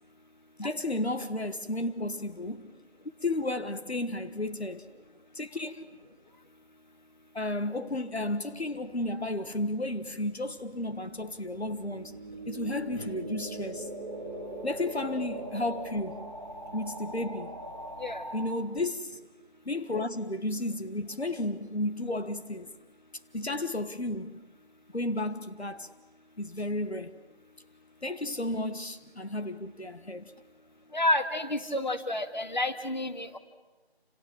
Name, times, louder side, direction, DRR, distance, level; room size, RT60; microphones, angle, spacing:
voice 1, 0.6-2.7 3.2-4.9 5.3-5.8 7.3-12.2 12.5-13.9 14.6-16.2 16.7-17.6 18.3-19.2 19.7-22.7 23.3-24.3 24.9-25.9 26.4-27.1 28.0-30.3, left 1 dB, 80° left, 1.6 m, -33 dB
sound 1, 9.3-18.6, right 1 dB, 5° left, 2.5 m, -41 dB
voice 2, 30.9-33.4, left 1 dB, 45° left, 2.0 m, -29 dB
29.0 x 27.5 x 7.4 m
figure-of-eight pair, 170°, 32 cm